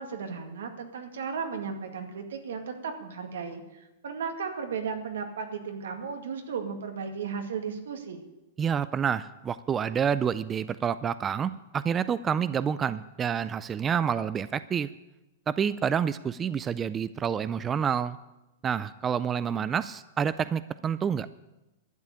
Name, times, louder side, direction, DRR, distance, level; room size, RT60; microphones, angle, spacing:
voice 1, 0.0-8.2, right 6 dB, 85° right, 5 dB, 2.1 m, -35 dB
voice 2, 8.6-14.9 15.5-18.2 18.6-21.3, right 7 dB, 20° right, 15 dB, 0.3 m, -28 dB
12.0 x 7.3 x 9.9 m, 0.99 s
hypercardioid pair, 135°, 0 cm